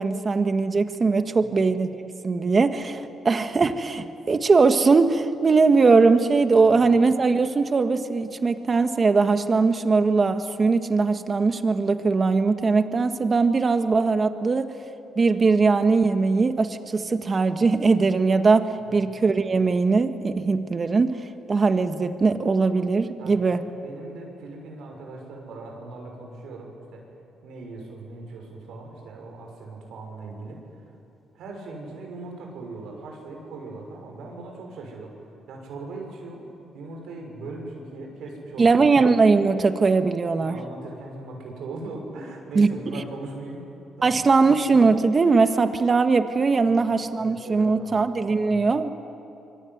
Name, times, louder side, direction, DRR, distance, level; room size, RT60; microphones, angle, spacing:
voice 1, 0.0-14.7 15.1-23.6 38.6-40.6 42.5-43.0 44.0-48.9, right 4 dB, 35° right, 8 dB, 1.7 m, -20 dB
voice 2, 23.8-27.0 27.4-30.6 31.3-35.1 35.5-36.4 36.7-38.9 40.3-43.6 43.9-44.3 46.6-46.9 47.1-48.6, right 2 dB, 80° right, 1 dB, 6.6 m, -39 dB
26.0 x 23.5 x 9.6 m, 2.8 s
cardioid pair, 90°, 0 cm